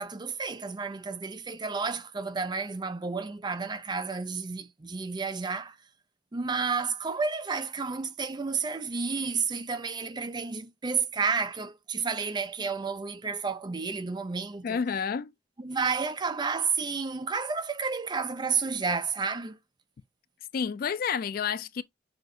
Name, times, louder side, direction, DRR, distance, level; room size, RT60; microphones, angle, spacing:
voice 1, 0.0-5.8 6.3-14.8 15.6-19.6, right 5 dB, 25° right, 0.4 m, -31 dB
voice 2, 14.6-15.3 20.5-21.8, left 6 dB, 50° left, 0.3 m, -29 dB
6.5 x 2.5 x 2.7 m
head